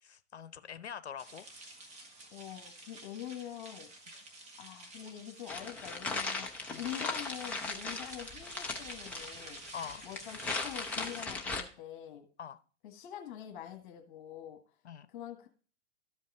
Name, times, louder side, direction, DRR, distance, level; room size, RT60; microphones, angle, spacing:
voice 1, 0.0-1.5 6.7-6.8 9.7-10.1 12.4-12.6 14.8-15.1, left 8 dB, 65° left, 0.8 m, -44 dB
sound 1, 1.2-11.2, right 2 dB, 20° right, 1.7 m, -50 dB
voice 2, 2.3-3.9 4.6-6.5 6.7-9.6 10.0-12.3 12.8-14.6 15.1-15.5, left 11 dB, 45° left, 1.7 m, -45 dB
sound 2, 5.5-11.6, left 3 dB, 5° left, 0.3 m, -38 dB
13.0 x 5.3 x 3.7 m
figure-of-eight pair, 105°, 35 cm